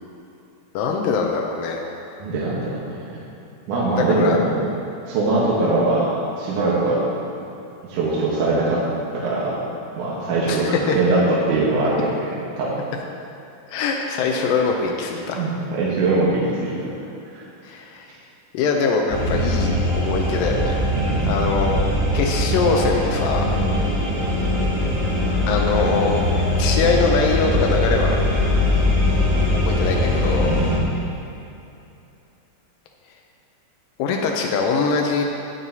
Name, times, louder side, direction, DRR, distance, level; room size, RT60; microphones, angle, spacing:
voice 1, 0.7-1.8 3.9-4.4 10.5-11.0 13.7-15.4 17.6-18.1 18.5-20.7 21.2-21.8 22.1-23.5 25.5-26.2 26.6-28.2 29.5-30.6 34.0-35.2, left 5 dB, 90° left, 1 dB, 2.3 m, -22 dB
voice 2, 2.2-3.0 3.7-4.4 5.1-7.0 7.9-8.8 9.1-9.6 10.0-12.1 12.6-12.7 15.4-16.7 17.3-17.4 20.9-21.5 30.4-30.8, right 2 dB, 75° right, -7 dB, 2.5 m, -21 dB
sound 1, 19.1-30.8, left 1 dB, 45° right, 2.3 m, -21 dB
9.1 x 9.0 x 2.7 m, 2.8 s
omnidirectional pair, 3.8 m